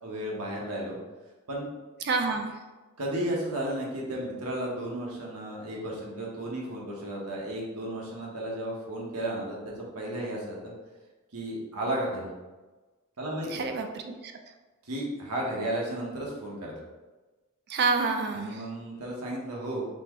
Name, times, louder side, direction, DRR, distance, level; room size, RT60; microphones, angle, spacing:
voice 1, 0.0-1.0 1.5-1.7 3.0-10.7 11.3-12.3 13.2-13.7 14.8-16.7 18.3-19.9, right 1 dB, 90° right, -2 dB, 1.1 m, -33 dB
voice 2, 2.0-2.5 13.5-14.3 17.7-18.6, right 4 dB, 50° right, 5 dB, 0.4 m, -28 dB
4.3 x 3.5 x 3.0 m, 1.2 s
head